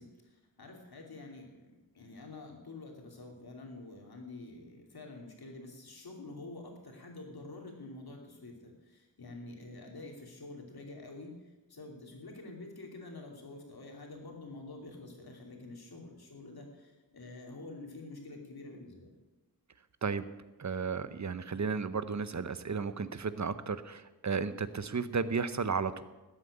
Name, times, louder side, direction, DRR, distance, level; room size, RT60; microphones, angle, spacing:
voice 1, 0.0-19.2, left 2 dB, 75° left, 2 dB, 2.9 m, -48 dB
voice 2, 20.6-26.0, right 5 dB, 50° right, 13 dB, 0.8 m, -33 dB
13.5 x 7.9 x 8.6 m, 1.1 s
wide cardioid pair, 75°, 37 cm